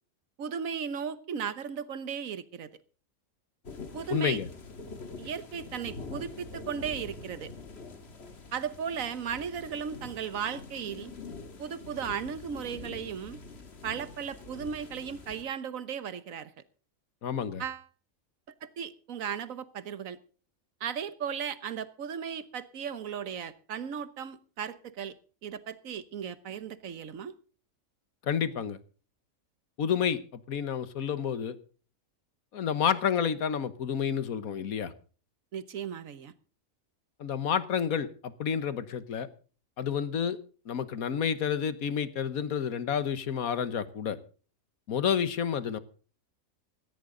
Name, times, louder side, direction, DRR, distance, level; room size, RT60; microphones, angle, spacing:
voice 1, 0.4-2.7 3.9-4.4 5.2-7.5 8.5-11.1 11.6-13.4 13.8-16.5 17.6-17.8 18.6-20.2 20.8-25.1 25.4-27.3 35.5-36.3, right 7 dB, 70° right, 1.5 m, -36 dB
sound 1, 3.6-15.4, left 3 dB, 50° left, 1.8 m, -45 dB
voice 2, 4.1-4.5 17.2-17.6 28.2-28.8 29.8-31.6 32.5-34.9 37.2-39.3 39.8-40.4 40.6-44.2 44.9-45.8, left 7 dB, 90° left, 1.6 m, -30 dB
17.0 x 15.0 x 3.9 m
omnidirectional pair, 1.5 m